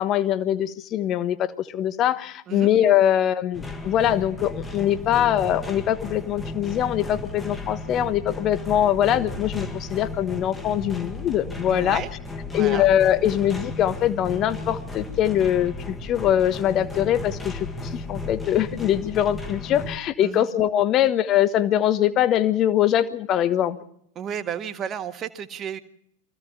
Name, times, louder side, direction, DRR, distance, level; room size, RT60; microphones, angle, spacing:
voice 1, 0.0-12.0 12.5-23.8, left 11 dB, 35° left, 14 dB, 1.2 m, -22 dB
sound 1, 3.5-20.0, left 2 dB, 10° left, 1.7 m, -35 dB
voice 2, 11.7-12.1 12.5-12.9 20.2-20.5 24.2-25.8, right 9 dB, 30° right, 9 dB, 1.6 m, -32 dB
24.5 x 16.0 x 7.3 m, 0.69 s
figure-of-eight pair, 90°, 0 cm